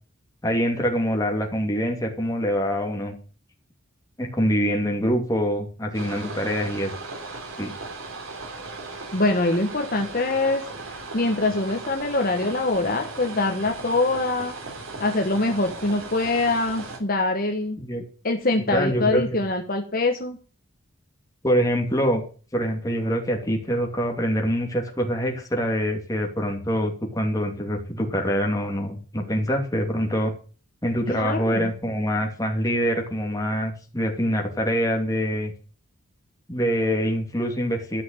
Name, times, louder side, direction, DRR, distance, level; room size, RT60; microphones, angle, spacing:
voice 1, 0.4-3.1 4.2-6.9 7.6-7.7 17.8-18.0 18.7-19.4 21.4-22.2 22.5-30.3 30.8-35.5 36.5-38.0, equal, 15° left, 2 dB, 2.6 m, -25 dB
sound 1, 5.9-17.0, right 3 dB, 75° right, 3.2 m, -37 dB
voice 2, 9.1-10.6 11.1-14.5 15.0-17.8 18.2-20.4 31.1-31.7, left 2 dB, 45° left, 3 dB, 1.3 m, -24 dB
13.5 x 6.0 x 9.1 m, 0.39 s
head